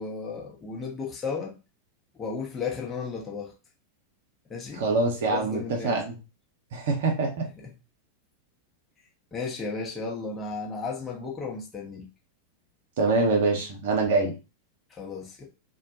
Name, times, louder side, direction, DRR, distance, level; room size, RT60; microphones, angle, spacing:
voice 1, 0.0-1.6 2.2-3.5 4.5-4.9 5.3-6.0 7.6-7.7 9.3-12.1 14.9-15.5, left 4 dB, 20° left, 0.8 m, -34 dB
voice 2, 4.8-6.1 6.7-7.5 13.0-14.3, right 3 dB, 55° right, 0.7 m, -25 dB
2.2 x 2.1 x 2.7 m
figure-of-eight pair, 90°, 0 cm